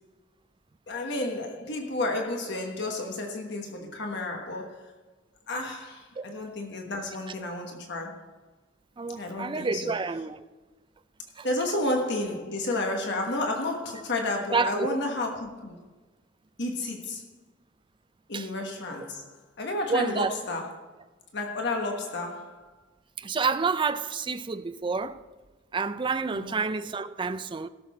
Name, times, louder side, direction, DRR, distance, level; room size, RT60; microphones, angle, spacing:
voice 1, 0.9-4.9 5.5-8.2 9.2-9.9 11.4-15.9 16.6-17.3 18.3-20.7 21.3-22.7 26.3-26.6, left 2 dB, 60° left, 1.3 m, -31 dB
voice 2, 9.0-10.4 11.4-11.5 14.5-15.0 18.3-18.5 19.9-20.3 23.2-25.2 25.7-27.7, right 4 dB, 25° right, 0.4 m, -29 dB
17.0 x 6.9 x 4.2 m
head